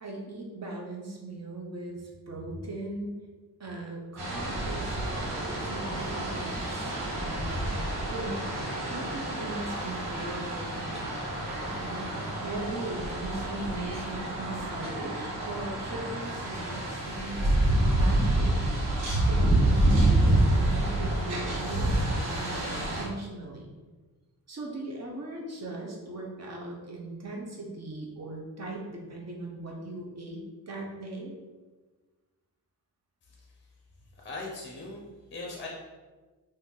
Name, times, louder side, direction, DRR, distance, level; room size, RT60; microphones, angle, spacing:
voice 1, 0.0-3.2 3.6-7.7 8.1-8.5 8.9-11.3 11.8-18.7 19.3-23.7 24.5-31.3, right 2 dB, 40° right, -1 dB, 0.8 m, -39 dB
sound 1, 4.2-23.0, right 1 dB, 75° right, 1.3 m, -28 dB
voice 2, 33.2-33.7 34.2-35.7, left 3 dB, 30° left, -2 dB, 0.6 m, -41 dB
2.7 x 2.6 x 3.8 m, 1.3 s
cardioid pair, 100°, 40 cm